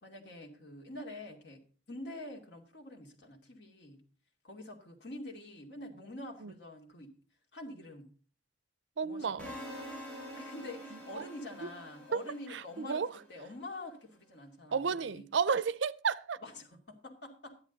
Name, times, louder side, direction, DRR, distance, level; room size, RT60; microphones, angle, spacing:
voice 1, 0.0-1.6 1.9-4.0 4.4-7.1 7.5-8.1 9.0-9.5 10.4-15.3 16.4-17.6, left 1 dB, 65° left, 2.6 m, -46 dB
voice 2, 9.0-9.5 10.9-11.3 11.6-11.7 12.1-12.2 12.5-13.1 14.7-16.4, right 5 dB, 80° right, 0.5 m, -32 dB
sound 1, 9.4-13.5, equal, 5° left, 6.2 m, -46 dB
13.0 x 11.0 x 4.0 m
head